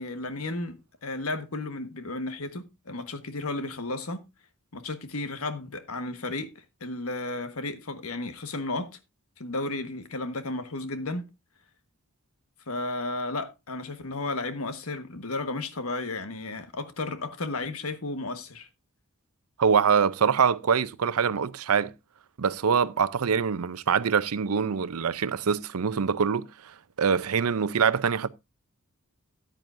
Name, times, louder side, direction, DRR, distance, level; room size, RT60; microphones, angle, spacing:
voice 1, 0.0-4.2 4.7-9.0 9.4-11.2 12.7-18.7, left 2 dB, 80° left, 1.4 m, -33 dB
voice 2, 19.6-21.9 22.4-28.3, right 6 dB, 85° right, 0.6 m, -24 dB
14.0 x 9.1 x 2.6 m
head